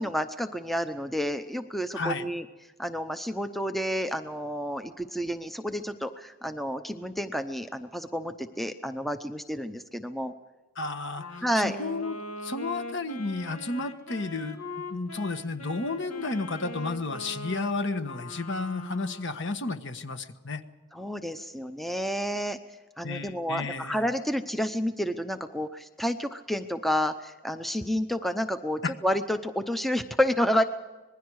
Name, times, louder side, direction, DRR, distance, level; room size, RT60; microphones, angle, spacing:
voice 1, 0.0-2.4 2.8-10.3 11.4-11.8 20.9-22.6 23.0-30.6, equal, ahead, 8 dB, 0.7 m, -30 dB
voice 2, 1.9-2.3 10.8-12.2 12.4-14.6 14.9-20.6 23.0-24.1 28.8-28.9, left 3 dB, 55° left, 9 dB, 1.3 m, -32 dB
Wind instrument woodwind instrument, 11.1-19.4, left 1 dB, 80° left, 2.4 m, -41 dB
26.0 x 20.5 x 4.8 m, 1.2 s
head